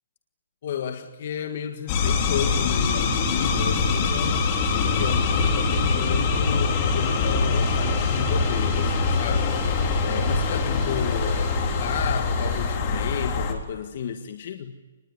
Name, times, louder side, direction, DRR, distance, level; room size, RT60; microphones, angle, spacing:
voice 1, 0.6-4.5 4.8-9.5 10.0-14.8, left 8 dB, 50° left, 1.7 m, -32 dB
sound 1, 1.9-13.5, left 4 dB, 30° left, 3.6 m, -23 dB
Mechanical fan, 7.6-12.8, right 13 dB, 45° right, 2.6 m, -41 dB
26.0 x 20.5 x 9.8 m
hypercardioid pair, 155°, 0 cm